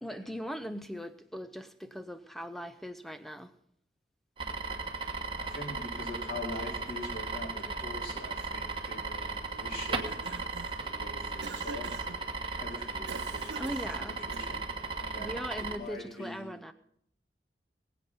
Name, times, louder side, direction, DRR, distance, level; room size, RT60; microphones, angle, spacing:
voice 1, 0.0-3.5 13.6-14.2 15.2-16.7, equal, ahead, 0.7 m, -39 dB
sound 1, 4.4-15.8, right 4 dB, 30° right, 1.3 m, -36 dB
voice 2, 5.4-10.4 10.8-11.9 12.6-14.7 15.0-15.4 15.7-16.5, left 1 dB, 55° left, 4.4 m, -43 dB
Cough, 9.9-10.9 11.4-12.2 13.1-14.7, right 4 dB, 75° right, 0.6 m, -45 dB
19.5 x 8.5 x 5.6 m
head